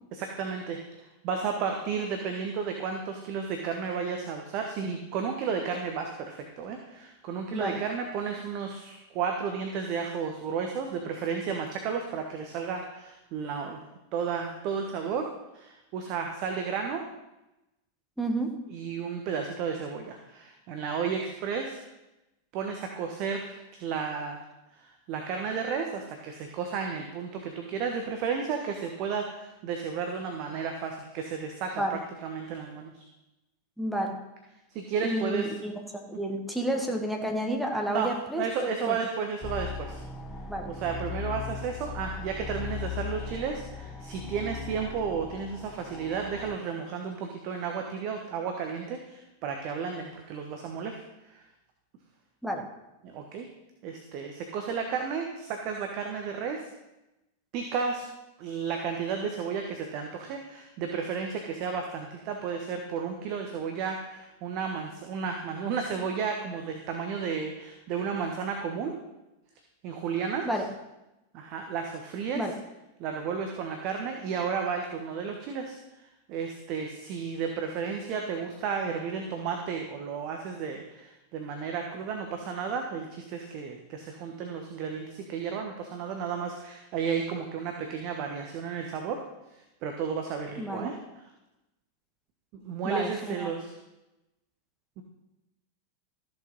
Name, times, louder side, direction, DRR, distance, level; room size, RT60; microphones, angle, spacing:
voice 1, 0.1-0.8 1.2-13.8 14.1-15.3 15.5-17.0 18.7-21.8 22.5-24.4 24.7-33.0 34.7-35.5 37.9-38.1 38.4-40.0 40.7-51.0 51.3-51.4 53.0-53.5 53.8-56.6 57.5-58.0 58.4-69.0 69.8-70.5 71.3-72.4 73.0-89.2 89.8-91.2 92.6-93.8 95.0-95.1, right 6 dB, 40° right, 3 dB, 1.3 m, -33 dB
voice 2, 18.2-18.6 31.8-32.0 33.8-34.2 35.0-35.7 36.1-39.0 40.5-40.7 52.4-52.7 70.4-70.6 72.3-72.5 90.6-90.9 92.8-93.5, right 1 dB, ahead, 1 dB, 1.7 m, -30 dB
sound 1, 39.4-46.6, left 6 dB, 15° left, 1.2 m, -38 dB
14.0 x 7.1 x 5.5 m, 0.95 s
figure-of-eight pair, 90°, 0 cm